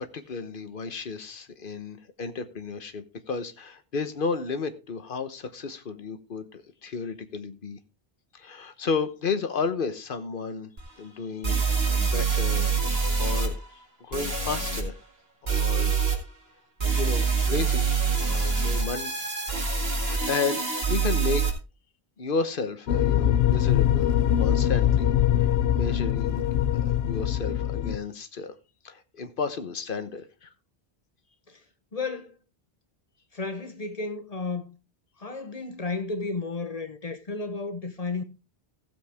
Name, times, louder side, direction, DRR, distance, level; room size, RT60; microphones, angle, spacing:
voice 1, 0.1-7.8 8.3-10.7 11.0-13.6 14.1-15.0 15.4-15.9 16.9-17.9 18.2-19.1 19.9-20.6 20.9-21.4 22.2-25.1 25.4-25.5 25.8-26.5 26.8-28.5 28.8-30.5, left 4 dB, 60° left, 1.2 m, -32 dB
sound 1, 10.8-10.9 11.4-13.5 14.1-14.8 15.5-16.2 16.8-21.5, right 5 dB, 75° right, 2.4 m, -25 dB
sound 2, 22.9-28.0, left 11 dB, 80° left, 0.9 m, -23 dB
voice 2, 31.9-32.3 33.3-34.7 35.2-38.2, left 3 dB, 40° left, 1.1 m, -33 dB
15.5 x 7.5 x 3.5 m
omnidirectional pair, 1.0 m